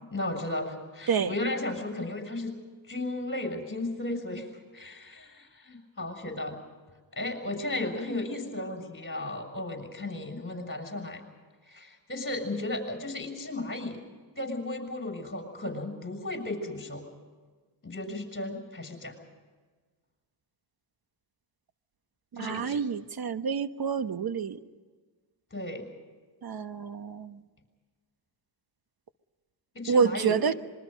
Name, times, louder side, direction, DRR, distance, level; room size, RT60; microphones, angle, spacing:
voice 1, 0.1-2.5 2.9-6.6 7.1-11.2 11.7-14.0 14.3-17.0 17.8-19.2 22.4-22.8 25.5-25.8 29.7-30.4, left 2 dB, 25° left, 4 dB, 6.7 m, -35 dB
voice 2, 22.3-24.6 26.4-27.4 29.9-30.5, right 6 dB, 50° right, 11 dB, 1.3 m, -28 dB
26.5 x 23.0 x 5.3 m, 1.4 s
cardioid pair, 80°, 47 cm